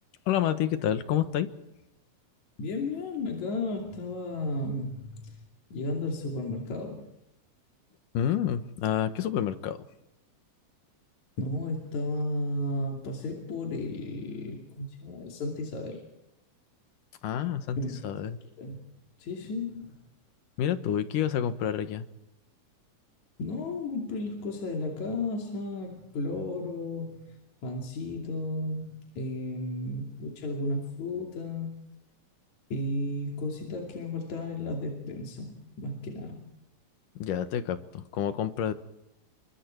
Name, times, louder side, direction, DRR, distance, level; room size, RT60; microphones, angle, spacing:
voice 1, 0.3-1.5 8.1-9.8 17.2-17.8 18.0-18.4 20.6-22.0 37.2-38.7, left 10 dB, 85° left, 10 dB, 2.9 m, -28 dB
voice 2, 2.6-5.3 5.7-7.1 11.4-16.0 17.8-18.1 18.6-18.8 19.2-20.0 23.4-27.2 27.6-31.7 32.7-36.4, left 2 dB, 65° left, 0 dB, 4.1 m, -33 dB
28.5 x 24.0 x 4.6 m, 0.89 s
omnidirectional pair, 3.7 m